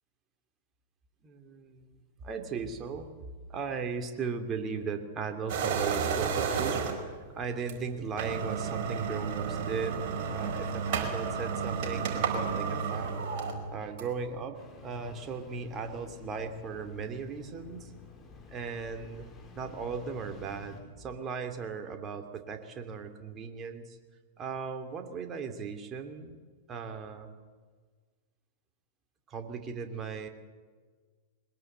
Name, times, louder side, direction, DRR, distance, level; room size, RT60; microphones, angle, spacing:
voice 1, 1.2-3.1 3.5-6.8 7.3-10.1 10.3-13.1 13.7-17.9 18.5-19.3 19.5-24.0 24.4-26.4 26.7-27.3 29.3-30.3, right 5 dB, 30° right, 6 dB, 2.9 m, -37 dB
sound 1, 5.5-7.2 7.7-7.8 8.1-14.3, right 6 dB, 50° right, 4.4 m, -32 dB
Engine starting, 14.5-20.8, left 6 dB, 25° left, 4.5 m, -50 dB
22.5 x 20.5 x 8.0 m, 1.5 s
figure-of-eight pair, 95°, 0 cm